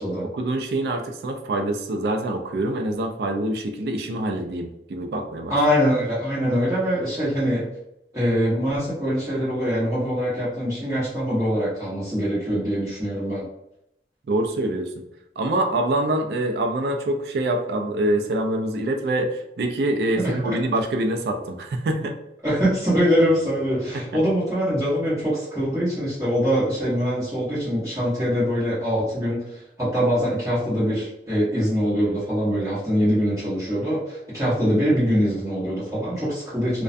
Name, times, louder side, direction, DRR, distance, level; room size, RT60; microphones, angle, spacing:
voice 1, 0.2-5.5 14.3-14.9 15.4-22.1 23.9-24.0, right 1 dB, 65° right, 4 dB, 0.3 m, -25 dB
voice 2, 5.5-7.7 8.1-13.4 20.2-20.6 22.4-36.8, equal, 20° right, -10 dB, 1.0 m, -23 dB
2.4 x 2.1 x 2.5 m, 0.83 s
head